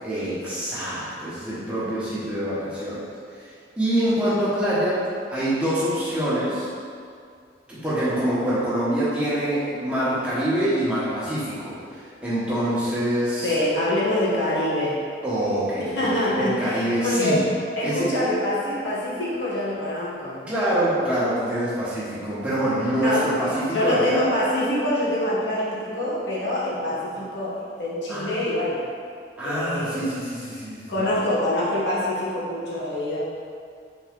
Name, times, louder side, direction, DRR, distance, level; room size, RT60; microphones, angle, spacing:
voice 1, 0.0-3.0 3.8-5.0 5.3-6.7 7.7-13.5 15.2-17.4 17.8-18.1 20.5-24.3 28.1-28.4 29.4-30.8, right 1 dB, 5° right, -11 dB, 1.1 m, -25 dB
voice 2, 13.4-15.0 15.8-17.4 17.7-20.4 23.0-23.5 23.7-28.8 29.4-30.0 30.9-33.2, left 1 dB, 80° left, -8 dB, 1.1 m, -25 dB
3.8 x 3.8 x 3.6 m, 2.3 s
head